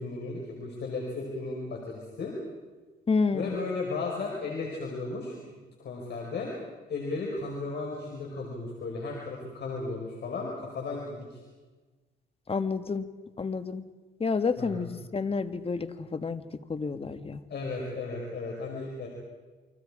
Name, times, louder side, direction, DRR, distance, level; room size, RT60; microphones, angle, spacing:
voice 1, 0.0-2.3 3.3-6.5 6.9-11.4 14.6-14.9 17.5-19.1, left 3 dB, 60° left, -1 dB, 5.2 m, -35 dB
voice 2, 3.1-3.5 12.5-13.0 13.4-13.8 14.2-16.4 16.7-17.4, left 4 dB, 30° left, 10 dB, 1.5 m, -29 dB
29.5 x 24.5 x 5.0 m, 1.3 s
cardioid pair, 90°, 20 cm